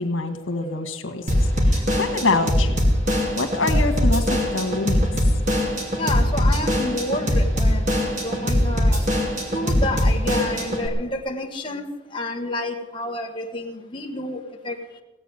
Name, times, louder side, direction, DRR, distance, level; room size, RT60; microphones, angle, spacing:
voice 1, 0.0-2.9 3.3-5.1, left 3 dB, 90° left, 5 dB, 1.8 m, -26 dB
Drum kit / Drum, 1.3-10.9, equal, 40° right, 2.7 m, -21 dB
voice 2, 6.0-7.8 8.2-9.1 9.5-14.8, left 2 dB, 25° left, 0 dB, 1.4 m, -29 dB
17.5 x 8.2 x 9.2 m, 1.1 s
head